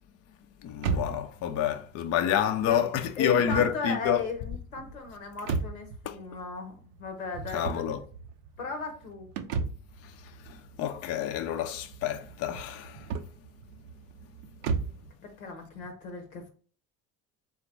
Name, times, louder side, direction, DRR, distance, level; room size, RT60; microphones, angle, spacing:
voice 1, 0.6-4.2 6.1-6.2 7.5-8.0 10.0-13.1, left 10 dB, 40° left, 0.4 m, -29 dB
sound 1, 0.8-15.1, right 5 dB, 75° right, 0.5 m, -37 dB
voice 2, 3.2-7.8 8.6-9.3 15.2-16.5, left 4 dB, 85° left, 0.8 m, -36 dB
3.7 x 2.2 x 4.3 m
figure-of-eight pair, 55°, 41 cm